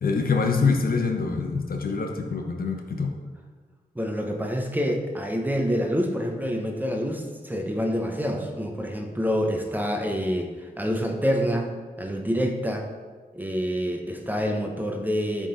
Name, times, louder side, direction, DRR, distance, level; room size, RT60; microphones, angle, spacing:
voice 1, 0.0-3.1, left 4 dB, 70° left, 3 dB, 0.8 m, -25 dB
voice 2, 3.9-12.9 13.3-15.5, equal, 10° right, 3 dB, 0.9 m, -27 dB
8.8 x 3.8 x 3.9 m, 1.4 s
wide cardioid pair, 70°, 16 cm